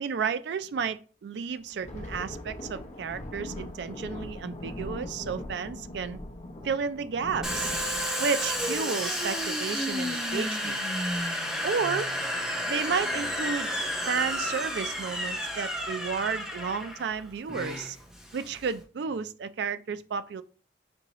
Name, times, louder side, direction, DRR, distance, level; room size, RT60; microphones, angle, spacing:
voice 1, 0.0-6.2 6.6-7.7 8.2-10.8 11.6-12.1 12.7-13.7 14.1-18.0 18.3-20.4, right 6 dB, 65° right, 0.3 m, -32 dB
Thunder, 1.6-10.7 11.0-11.2 11.6-11.9 12.5-13.0, left 1 dB, 40° left, 0.7 m, -41 dB
Domestic sounds home sounds, 7.4-18.8, equal, 5° right, 0.9 m, -31 dB
5.3 x 2.7 x 3.0 m
head